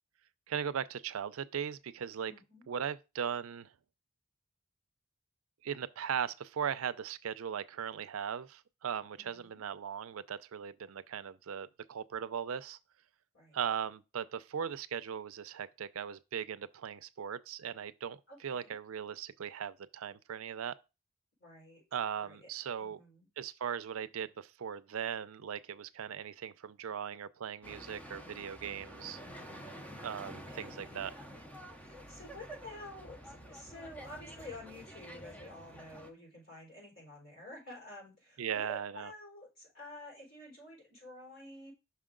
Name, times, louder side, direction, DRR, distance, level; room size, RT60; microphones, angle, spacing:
voice 1, 0.5-2.3 2.7-3.7 5.6-12.8 13.5-20.7 21.9-23.0 23.4-29.2 30.0-31.1 38.4-39.1, right 8 dB, 70° right, 0.4 m, -38 dB
voice 2, 2.3-2.6 9.2-9.6 13.3-13.6 18.3-18.7 21.4-21.8 22.2-22.5 22.8-23.3 30.5-31.1 31.8-41.7, left 1 dB, 65° left, 4.4 m, -50 dB
sound 1, 27.6-36.1, equal, 5° left, 0.6 m, -49 dB
5.8 x 4.9 x 3.7 m
head